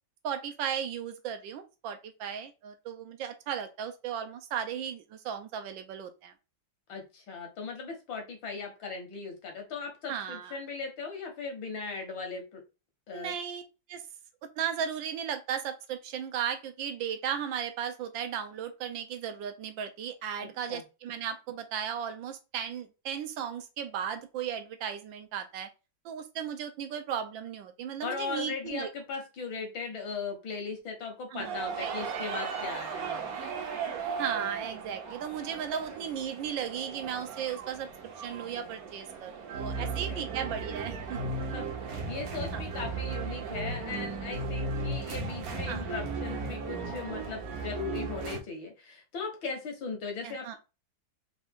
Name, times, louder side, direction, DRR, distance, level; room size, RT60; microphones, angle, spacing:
voice 1, 0.2-6.3 10.1-10.6 13.1-13.6 13.9-14.0 14.6-25.7 26.0-28.9 31.3-32.2 33.0-33.1 34.2-37.9 38.2-41.3 42.5-42.7 45.7-45.9 50.2-50.6, right 8 dB, 80° right, 1.4 m, -36 dB
voice 2, 6.9-12.6 13.1-13.3 20.7-20.8 28.0-33.4 39.8-40.3 41.5-50.6, left 4 dB, 75° left, 2.0 m, -38 dB
sound 1, 31.4-48.4, right 4 dB, 60° right, 1.1 m, -36 dB
4.5 x 2.5 x 3.6 m
omnidirectional pair, 2.1 m